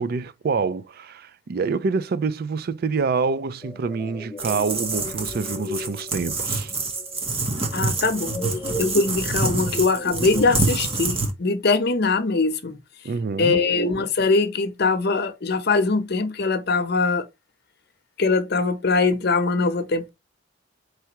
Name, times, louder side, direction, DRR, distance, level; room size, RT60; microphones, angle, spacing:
voice 1, 0.0-6.7 13.0-13.6, right 4 dB, 50° right, 0.4 m, -26 dB
sound 1, 3.6-11.0, left 1 dB, 15° left, 0.6 m, -36 dB
sound 2, 4.4-11.3, right 3 dB, 30° right, 1.0 m, -27 dB
voice 2, 7.7-8.4 8.8-12.8 13.4-17.3 18.2-20.1, left 3 dB, 55° left, 0.8 m, -22 dB
4.6 x 3.3 x 2.9 m
head